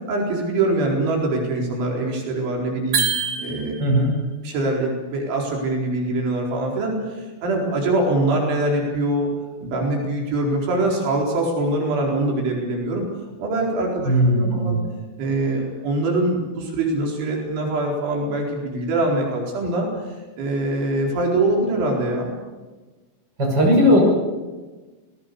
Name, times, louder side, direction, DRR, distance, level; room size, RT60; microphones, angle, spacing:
voice 1, 0.1-3.0 3.4-3.8 4.4-9.3 9.6-13.1 13.4-14.8 15.2-19.9 20.4-22.4, right 2 dB, 75° right, -1 dB, 6.8 m, -23 dB
sound 1, 2.9-4.1, right 6 dB, 55° right, 4.4 m, -25 dB
voice 2, 3.8-4.2 14.0-14.8 23.4-24.0, equal, 20° right, 0 dB, 6.8 m, -17 dB
28.5 x 19.5 x 6.9 m, 1.3 s
omnidirectional pair, 5.5 m